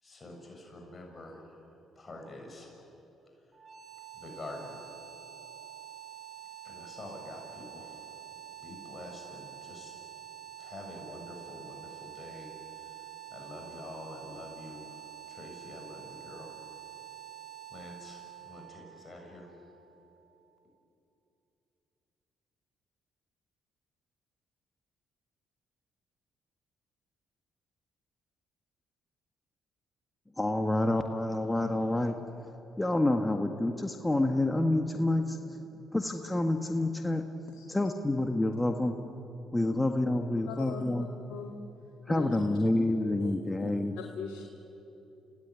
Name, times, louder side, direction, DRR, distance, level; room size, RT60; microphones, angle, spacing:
voice 1, 0.0-2.7 3.5-3.6 4.1-4.8 6.6-8.2 8.6-10.0 10.6-16.5 17.7-19.5, left 2 dB, 30° left, 1 dB, 6.6 m, -47 dB
sound 1, 3.5-20.4, right 10 dB, 40° right, 2.8 m, -47 dB
voice 2, 30.4-32.2 32.8-35.6 35.9-37.2 37.7-38.9 39.5-41.1 42.1-43.9, left 1 dB, 15° left, 5 dB, 1.8 m, -28 dB
voice 3, 40.5-40.8 41.3-41.5 42.1-42.3 43.2-43.3 43.6-43.7 44.0-44.4, left 8 dB, 75° left, 1 dB, 2.3 m, -40 dB
29.5 x 17.0 x 9.8 m, 2.9 s
supercardioid pair, 60°, 0 cm